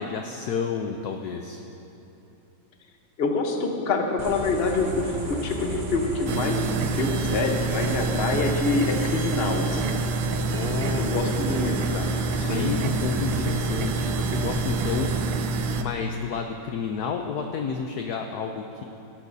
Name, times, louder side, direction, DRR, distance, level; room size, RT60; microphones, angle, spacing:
voice 1, 0.0-1.6 10.5-11.6 12.5-15.1 15.8-18.8, left 6 dB, 70° left, 4 dB, 1.0 m, -31 dB
voice 2, 3.2-9.9 11.0-12.1 12.4-12.7, left 3 dB, 40° left, 2 dB, 1.0 m, -26 dB
sound 1, 4.2-15.3, right 2 dB, 35° right, 0.9 m, -34 dB
sound 2, 6.3-15.8, right 3 dB, 80° right, 1.3 m, -27 dB
18.0 x 12.0 x 2.7 m, 3.0 s
omnidirectional pair, 2.1 m